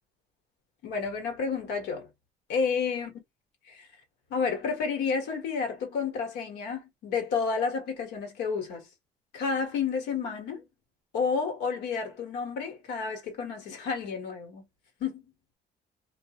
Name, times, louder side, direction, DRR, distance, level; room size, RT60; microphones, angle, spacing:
voice 1, 0.8-2.1 2.5-3.1 3.7-3.9 4.3-8.9 9.3-10.6 11.1-14.6 15.0-15.3, left 5 dB, 90° left, 1.4 m, -30 dB
2.9 x 2.6 x 2.4 m
cardioid pair, 110°, 17 cm